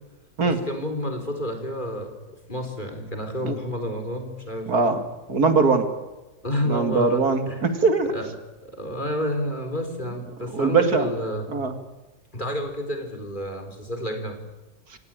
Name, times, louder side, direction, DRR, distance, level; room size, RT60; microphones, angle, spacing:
voice 1, 0.4-2.1 2.5-4.9 6.4-7.6 8.1-8.3 8.6-11.5 12.3-14.4, equal, 30° left, 5 dB, 4.4 m, -30 dB
voice 2, 4.7-5.0 5.3-5.8 6.7-8.1 10.5-11.1 11.5-11.7, right 4 dB, 70° right, 8 dB, 2.7 m, -21 dB
27.0 x 18.0 x 9.0 m, 1.1 s
omnidirectional pair, 1.7 m